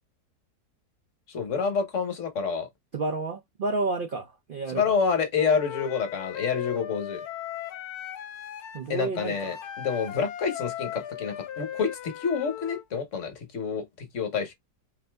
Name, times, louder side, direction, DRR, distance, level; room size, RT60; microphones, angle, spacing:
voice 1, 1.3-2.7 4.7-7.2 8.9-14.5, left 6 dB, 55° left, 1.2 m, -28 dB
voice 2, 2.9-4.8 8.7-9.6, right 3 dB, 55° right, 0.5 m, -30 dB
Wind instrument woodwind instrument, 5.4-12.8, left 10 dB, 75° left, 1.2 m, -38 dB
4.5 x 2.6 x 3.3 m
omnidirectional pair, 1.7 m